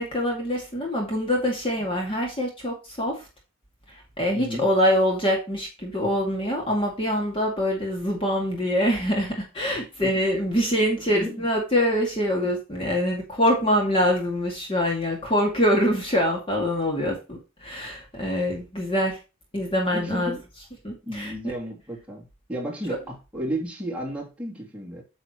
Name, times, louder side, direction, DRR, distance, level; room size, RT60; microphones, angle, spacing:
voice 1, 0.0-3.1 3.9-19.2 19.5-20.4 20.8-21.3 22.9-23.0, equal, 25° left, 2.2 m, -24 dB
voice 2, 4.3-4.7 10.0-10.1 11.1-11.4 19.9-20.4 21.0-25.0, right 1 dB, 5° right, 2.8 m, -33 dB
8.9 x 7.1 x 3.0 m
head